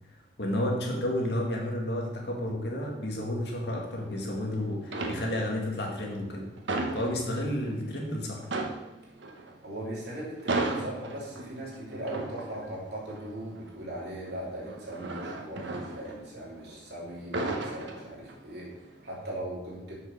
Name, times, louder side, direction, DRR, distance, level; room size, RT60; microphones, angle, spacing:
voice 1, 0.4-6.5 6.9-8.5, left 1 dB, 65° left, -1 dB, 2.2 m, -31 dB
sound 1, 3.8-4.5 4.8-5.7 6.0-7.8 8.1-8.2 8.4-16.8 17.1-18.6 19.0-19.2, right 2 dB, 80° right, 1.2 m, -35 dB
voice 2, 9.6-19.9, right 1 dB, 65° right, -5 dB, 3.3 m, -39 dB
7.6 x 6.2 x 6.4 m, 0.97 s
head